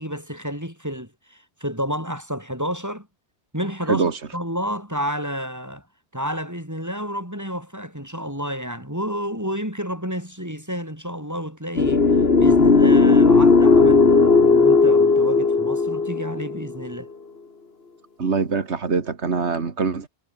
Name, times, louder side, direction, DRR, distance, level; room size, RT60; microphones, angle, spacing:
voice 1, 0.0-3.1 3.5-5.8 6.1-12.1 12.4-17.1, equal, 15° right, 7.6 m, -30 dB
sound 1, 11.8-16.9, left 4 dB, 60° left, 2.3 m, -16 dB
voice 2, 18.2-20.1, right 5 dB, 80° right, 2.3 m, -23 dB
omnidirectional pair, 1.1 m